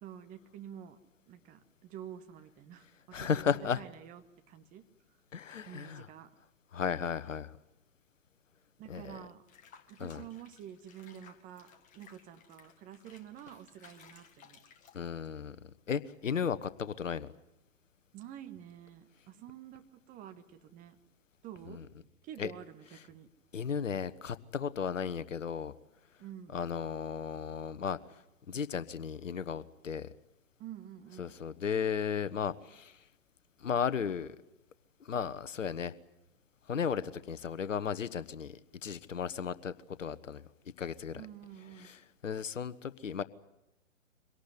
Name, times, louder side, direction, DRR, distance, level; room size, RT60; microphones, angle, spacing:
voice 1, 0.0-1.0 1.3-3.3 3.8-4.2 4.5-4.8 5.7-6.3 8.8-9.4 9.9-14.6 18.1-21.0 21.4-21.9 22.2-23.3 26.2-26.6 30.6-31.3 41.1-42.0, right 10 dB, 20° right, 8 dB, 1.4 m, -48 dB
voice 2, 3.1-3.8 5.3-6.1 6.7-7.5 8.9-9.3 10.0-10.2 14.9-15.6 15.9-17.3 21.7-21.8 22.4-22.5 23.5-25.7 26.5-28.0 28.5-30.1 31.2-32.9 33.6-34.4 35.0-35.9 36.7-39.7 40.0-40.4 40.8-41.2 41.8-43.2, left 7 dB, 70° left, 15 dB, 1.3 m, -35 dB
Water / Bathtub (filling or washing), 9.5-15.4, left 7 dB, 20° left, 1.8 m, -59 dB
24.0 x 18.0 x 9.7 m, 0.92 s
figure-of-eight pair, 125°, 40 cm